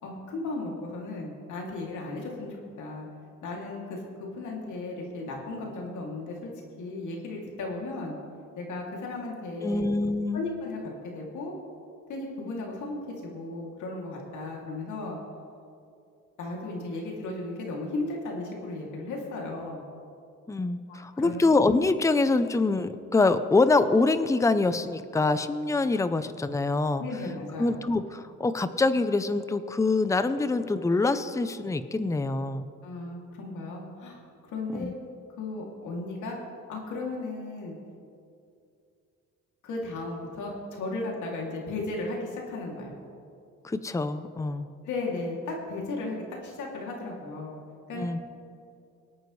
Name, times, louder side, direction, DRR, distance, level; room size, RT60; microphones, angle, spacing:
voice 1, 0.0-3.1 3.4-6.5 6.8-8.1 8.6-9.9 10.3-11.5 12.1-15.2 16.4-19.8 20.9-21.4 27.0-27.8 32.8-34.2 34.5-34.9 35.4-36.4 36.7-37.7 39.6-42.9 44.8-47.6 47.9-48.1, left 2 dB, 75° left, -1 dB, 2.8 m, -35 dB
voice 2, 9.6-10.4 20.5-27.0 27.6-32.7 34.7-34.9 43.6-44.7 48.0-48.2, left 3 dB, 10° left, 11 dB, 0.6 m, -25 dB
23.5 x 9.1 x 3.2 m, 2.5 s
cardioid pair, 90°, 30 cm